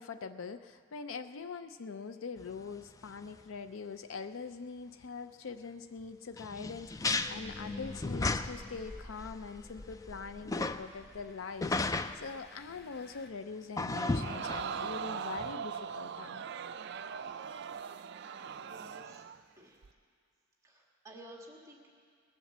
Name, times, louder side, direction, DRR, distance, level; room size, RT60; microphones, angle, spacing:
voice 1, 0.0-16.4, left 5 dB, 75° left, 10 dB, 0.5 m, -43 dB
sound 1, 2.4-2.5 3.0-3.1 3.4-3.5 6.4-8.8 9.2-9.3 9.8-10.8 11.6-12.2 13.8-15.0 15.4-15.5, left 3 dB, 15° left, 0.3 m, -34 dB
Engine, 6.7-13.3, left 1 dB, 55° left, 0.8 m, -53 dB
Crowd, 13.9-19.4 19.8-19.9, right 7 dB, 55° right, 0.4 m, -40 dB
voice 2, 18.4-19.2 19.6-19.8 20.6-21.9, right 1 dB, 15° right, -1 dB, 1.6 m, -53 dB
21.0 x 7.3 x 7.2 m, 2.2 s
head